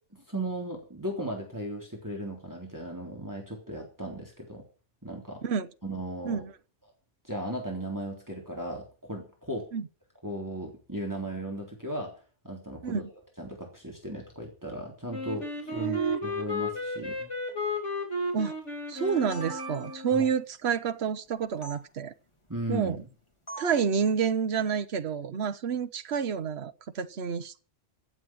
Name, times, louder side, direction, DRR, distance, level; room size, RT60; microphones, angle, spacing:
voice 1, 0.1-4.6 5.0-5.4 5.8-6.4 7.2-9.7 10.2-12.1 12.4-13.0 13.4-17.3 20.1-20.2 22.5-23.0, right 1 dB, 15° right, 3.5 m, -36 dB
Wind instrument woodwind instrument, 15.1-20.2, left 2 dB, 90° left, 4.2 m, -33 dB
voice 2, 15.8-16.2 18.3-18.6 18.9-22.1 22.7-23.0 23.6-27.5, right 7 dB, 65° right, 1.2 m, -29 dB
sound 1, 19.0-20.2 21.6-21.8 23.5-23.9, right 4 dB, 25° left, 3.2 m, -42 dB
15.5 x 7.8 x 8.7 m
omnidirectional pair, 1.2 m